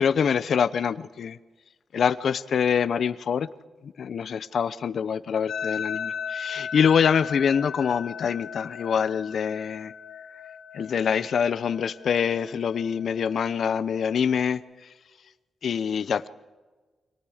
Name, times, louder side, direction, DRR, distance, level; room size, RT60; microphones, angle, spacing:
voice 1, 0.0-1.4 1.9-3.5 3.8-9.9 10.7-14.6 15.6-16.3, left 7 dB, 60° left, 0.8 m, -25 dB
sound 1, 5.5-14.5, left 7 dB, 80° left, 3.0 m, -37 dB
29.0 x 25.5 x 5.0 m
wide cardioid pair, 150°, 0 cm